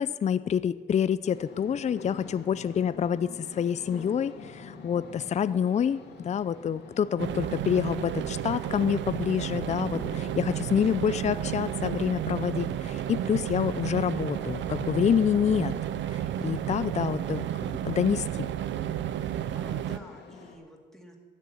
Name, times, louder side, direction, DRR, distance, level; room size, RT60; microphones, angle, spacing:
voice 1, 0.0-15.7 16.1-18.5, left 8 dB, 35° left, 15 dB, 0.5 m, -27 dB
sound 1, 1.2-20.6, left 4 dB, 60° left, 2.2 m, -47 dB
voice 2, 2.1-2.5 10.5-10.9 19.5-21.2, equal, ahead, 0 dB, 2.5 m, -49 dB
sound 2, 7.2-20.0, right 11 dB, 70° right, 0.5 m, -32 dB
sound 3, 10.0-19.6, right 4 dB, 25° right, 0.9 m, -50 dB
13.0 x 6.7 x 9.6 m, 1.5 s
cardioid pair, 90°, 20 cm